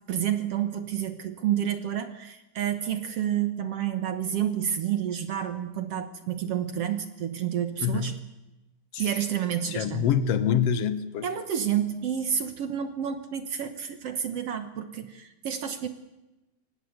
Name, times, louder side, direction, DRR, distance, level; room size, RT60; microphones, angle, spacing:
voice 1, 0.1-8.2 9.0-10.0 11.2-15.9, right 9 dB, 65° right, 1.5 m, -29 dB
voice 2, 7.8-8.1 8.9-9.1 9.6-11.3, left 8 dB, 75° left, 1.4 m, -26 dB
24.5 x 18.5 x 8.0 m
omnidirectional pair, 4.1 m